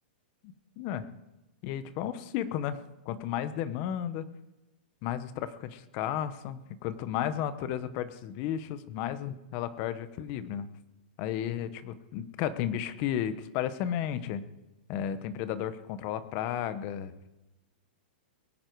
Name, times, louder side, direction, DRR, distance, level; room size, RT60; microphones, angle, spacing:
voice 1, 0.4-1.1 1.6-2.8 3.0-4.2 5.0-10.7 11.2-14.4 14.9-17.1, left 10 dB, 35° left, 13 dB, 1.0 m, -33 dB
22.0 x 9.7 x 4.7 m, 1.0 s
hypercardioid pair, 160°, 5 cm